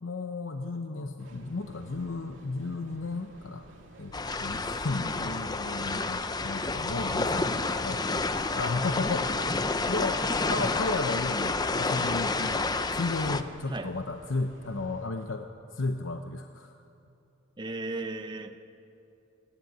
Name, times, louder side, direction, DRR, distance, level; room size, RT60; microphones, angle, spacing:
voice 1, 0.0-3.7 4.0-8.1 8.5-9.4 9.9-15.5 15.7-16.7, left 3 dB, 75° left, 6 dB, 0.8 m, -34 dB
Train, 1.2-15.1, right 1 dB, 70° right, 2.5 m, -53 dB
sound 1, 4.1-13.4, left 3 dB, 20° left, 0.6 m, -29 dB
voice 2, 10.2-10.7 13.7-13.9 17.6-18.6, right 2 dB, 25° right, 7 dB, 0.7 m, -36 dB
28.0 x 11.0 x 9.4 m, 2.7 s
head